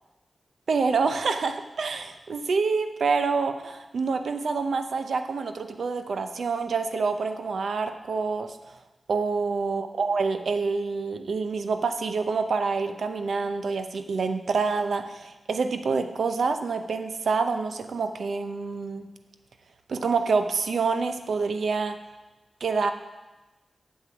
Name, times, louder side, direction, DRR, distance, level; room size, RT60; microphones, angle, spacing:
voice 1, 0.7-8.6 9.1-19.1 19.9-22.0 22.6-22.9, right 4 dB, 85° right, 8 dB, 0.7 m, -27 dB
8.2 x 7.5 x 6.0 m, 1.1 s
cardioid pair, 50°, 0 cm